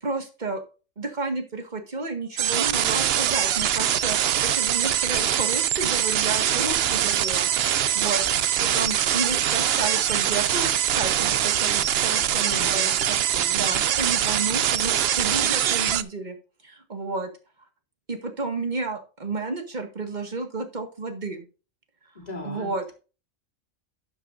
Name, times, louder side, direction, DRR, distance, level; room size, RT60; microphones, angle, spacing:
voice 1, 0.0-0.6 1.0-7.5 7.8-8.2 8.6-13.2 13.5-16.4 16.6-17.3 18.1-21.5 22.4-22.8, right 3 dB, 35° right, 6 dB, 1.9 m, -31 dB
sound 1, 2.4-16.0, right 10 dB, 60° right, 0.7 m, -23 dB
voice 2, 12.4-13.8 22.1-22.9, left 2 dB, 30° left, 1 dB, 3.4 m, -39 dB
11.5 x 8.1 x 2.6 m, 0.33 s
omnidirectional pair, 1.3 m